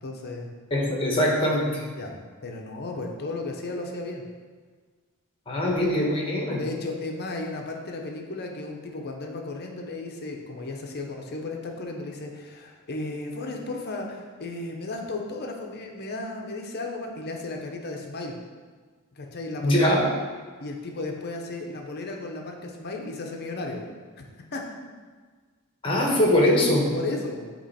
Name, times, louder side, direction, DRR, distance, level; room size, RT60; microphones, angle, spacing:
voice 1, 0.0-0.5 1.9-4.2 6.5-18.4 19.2-19.9 20.6-23.9 24.2-24.3 24.5-24.6 26.9-27.5, left 2 dB, 45° left, 2 dB, 0.7 m, -34 dB
voice 2, 0.7-1.9 5.5-6.6 19.6-20.1 25.8-26.9, left 1 dB, 25° left, -1 dB, 1.1 m, -22 dB
8.3 x 3.0 x 4.2 m, 1.5 s
head